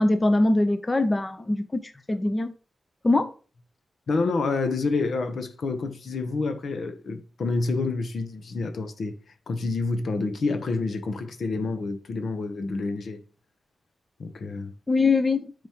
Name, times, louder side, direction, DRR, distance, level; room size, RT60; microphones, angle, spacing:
voice 1, 0.0-2.5 3.0-3.3 14.9-15.7, left 2 dB, 25° left, 0.7 m, -23 dB
voice 2, 4.1-9.2 9.5-13.2 14.2-14.7, left 3 dB, 70° left, 1.0 m, -28 dB
9.0 x 5.1 x 3.0 m
cardioid pair, 75°, 0 cm